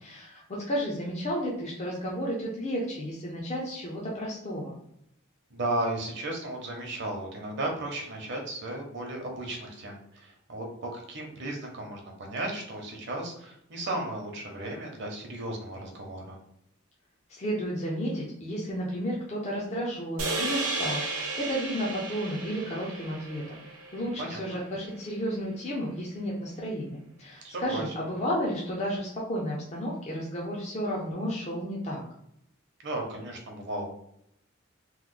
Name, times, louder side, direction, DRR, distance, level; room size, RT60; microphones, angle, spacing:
voice 1, 0.0-4.7 17.3-23.6 23.9-32.0, equal, 30° left, -4 dB, 0.5 m, -32 dB
voice 2, 5.5-16.4 24.2-24.6 27.4-27.9 32.8-33.9, right 2 dB, 55° right, 1 dB, 0.8 m, -35 dB
sound 1, 20.2-24.6, right 3 dB, 90° right, 0.8 m, -34 dB
3.0 x 2.1 x 3.7 m, 0.75 s
head